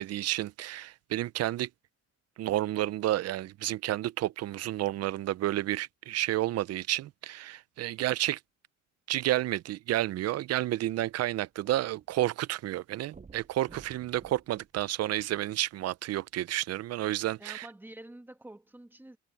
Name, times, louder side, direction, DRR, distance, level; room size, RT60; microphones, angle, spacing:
voice 1, 0.0-1.7 2.4-8.4 9.1-17.7, right 14 dB, 55° right, 0.5 m, -31 dB
sound 1, 11.1-12.3 12.6-12.7 13.1-15.6 16.3-16.4, right 4 dB, 25° right, 7.6 m, -55 dB
voice 2, 17.4-19.2, right 1 dB, 5° right, 1.7 m, -48 dB
cardioid pair, 135°, 30 cm